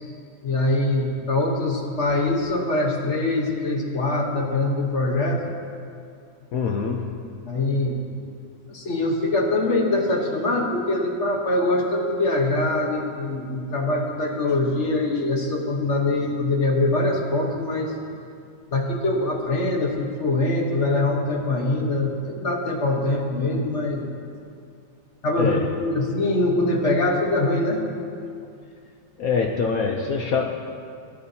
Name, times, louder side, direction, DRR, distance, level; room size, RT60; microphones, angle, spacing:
voice 1, 0.4-5.4 7.4-8.0 8.7-17.9 18.7-24.0 25.2-27.8, left 2 dB, 45° left, 0 dB, 1.1 m, -23 dB
voice 2, 6.5-7.1 25.4-25.6 29.2-30.5, left 5 dB, 75° left, 2 dB, 0.8 m, -24 dB
17.5 x 9.5 x 2.7 m, 2.4 s
omnidirectional pair, 2.2 m